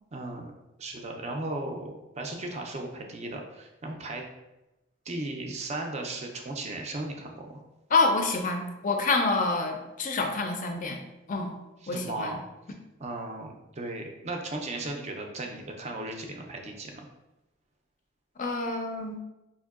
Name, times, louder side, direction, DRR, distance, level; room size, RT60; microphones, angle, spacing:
voice 1, 0.1-0.5 0.8-4.3 5.1-7.6 11.8-12.4 13.0-17.1, right 2 dB, 35° right, 2 dB, 0.4 m, -36 dB
voice 2, 7.9-11.0 11.3-11.6 11.9-12.4 18.4-19.2, left 3 dB, 40° left, 4 dB, 0.4 m, -27 dB
4.5 x 2.6 x 2.4 m, 0.98 s
head